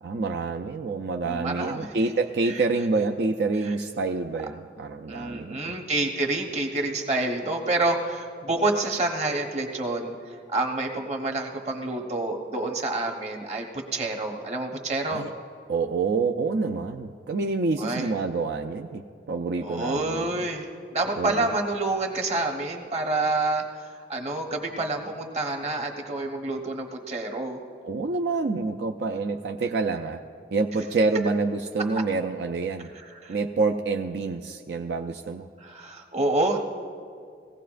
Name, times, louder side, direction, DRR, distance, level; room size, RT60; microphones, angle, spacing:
voice 1, 0.0-5.8 15.1-15.3 15.7-20.3 21.2-21.6 27.8-30.2 30.5-32.9 33.3-35.5, right 3 dB, 70° right, 3 dB, 0.5 m, -27 dB
voice 2, 1.2-1.9 5.1-10.2 10.5-15.3 17.8-18.0 19.6-20.7 20.9-27.6 33.2-33.3 35.6-36.6, right 2 dB, 40° right, 2 dB, 1.2 m, -28 dB
20.0 x 16.0 x 2.5 m, 2.2 s
head